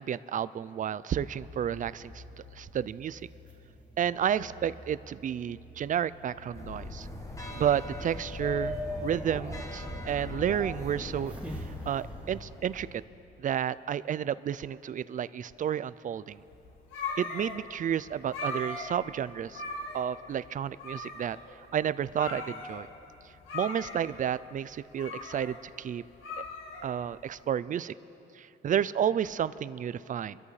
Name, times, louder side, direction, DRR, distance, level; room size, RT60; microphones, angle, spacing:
voice 1, 0.0-2.2 2.5-3.2 4.0-7.1 7.5-13.0 13.4-16.4 17.2-19.6 19.9-21.4 21.7-22.9 23.5-26.0 26.8-27.9 28.4-30.4, right 9 dB, 40° right, 17 dB, 0.4 m, -31 dB
sound 1, 1.1-12.4, left 1 dB, 5° right, 2.5 m, -44 dB
sound 2, 6.5-13.0, left 1 dB, 15° left, 1.5 m, -41 dB
sound 3, 16.4-27.4, left 2 dB, 80° left, 1.5 m, -40 dB
24.5 x 13.5 x 3.3 m, 3.0 s
cardioid pair, 90°, 20 cm